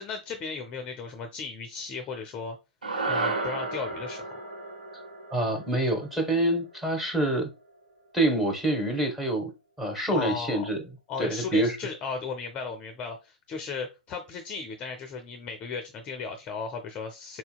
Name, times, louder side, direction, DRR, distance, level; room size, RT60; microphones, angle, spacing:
voice 1, 0.0-2.6 3.0-4.4 10.1-10.6 11.1-17.4, left 5 dB, 25° left, 0.5 m, -36 dB
sound 1, 2.8-7.3, right 3 dB, 85° right, 0.9 m, -33 dB
voice 2, 5.3-7.5 8.1-9.5 9.8-10.8 11.2-11.8, right 1 dB, 5° right, 1.0 m, -26 dB
4.1 x 2.8 x 2.2 m
figure-of-eight pair, 115°, 4 cm